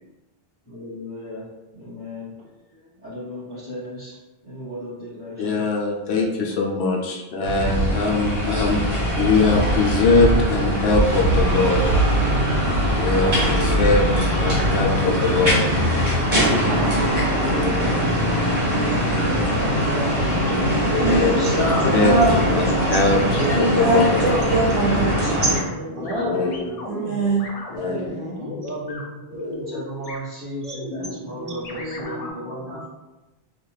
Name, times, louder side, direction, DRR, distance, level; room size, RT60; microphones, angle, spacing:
voice 1, 0.7-1.4 1.7-2.3 3.0-4.2 4.4-5.6 13.0-13.9 16.5-21.9 25.9-26.8 27.3-28.1 28.6-32.9, left 1 dB, 20° left, -12 dB, 1.1 m, -34 dB
voice 2, 5.4-8.8 9.2-11.8 13.0-15.7 17.4-17.9 21.0-21.7 21.9-24.0 26.0-26.6 27.7-28.1 29.3-29.6, left 3 dB, 75° left, 0 dB, 0.8 m, -22 dB
sound 1, 7.4-25.6, equal, 60° right, 1.3 m, -21 dB
voice 3, 14.0-14.8 16.3-16.9 20.3-20.8 21.9-22.4 22.7-23.2 24.2-24.3 25.4-26.5 27.8-28.7 30.6-32.4 32.6-32.9, right 1 dB, 40° right, -3 dB, 0.5 m, -31 dB
voice 4, 20.9-21.4 22.0-22.4 23.4-25.3 26.9-27.5, right 3 dB, 85° right, -6 dB, 0.9 m, -22 dB
sound 2, 22.9-23.5 23.9-24.6 24.9-25.6 26.1-26.3 26.5-27.8 28.1-29.0 29.3-29.8 30.1-30.2 30.6-31.1 31.6-32.3, left 2 dB, 50° left, 0.5 m, -36 dB
2.4 x 2.3 x 3.2 m, 1.1 s
omnidirectional pair, 1.1 m